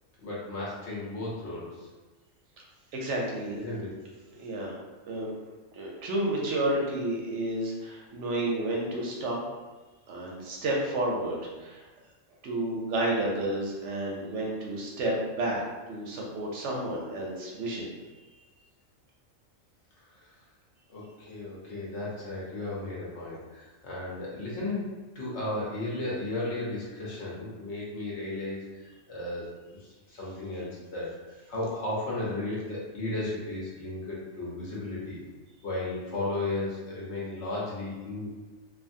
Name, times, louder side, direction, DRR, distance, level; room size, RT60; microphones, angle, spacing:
voice 1, 0.2-1.9 3.5-3.9 20.2-20.3 20.9-24.9 25.1-29.4 29.8-35.2 35.6-38.3, left 2 dB, 65° left, -6 dB, 1.1 m, -34 dB
voice 2, 2.9-3.6 4.3-4.8 5.1-5.3 5.7-9.4 10.1-11.8 12.4-17.9, right 1 dB, 70° right, -2 dB, 0.9 m, -31 dB
2.6 x 2.4 x 2.6 m, 1.2 s
omnidirectional pair, 1.4 m